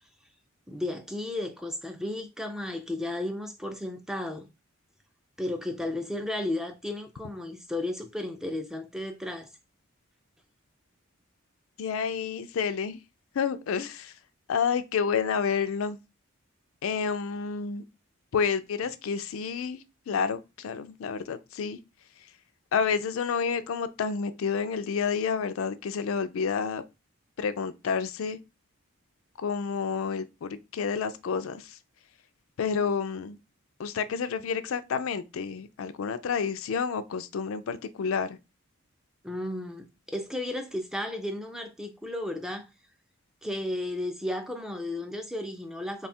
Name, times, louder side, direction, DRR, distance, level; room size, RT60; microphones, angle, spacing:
voice 1, 0.7-4.5 5.4-9.5 39.2-42.7 43.4-46.1, left 1 dB, ahead, 0.3 m, -34 dB
voice 2, 11.8-13.0 13.4-14.1 14.5-16.0 16.8-17.8 18.3-19.8 20.1-21.8 22.7-26.8 27.4-28.4 29.4-31.7 32.6-33.4 33.8-38.4, left 6 dB, 70° left, 0.4 m, -29 dB
3.2 x 2.4 x 4.2 m
head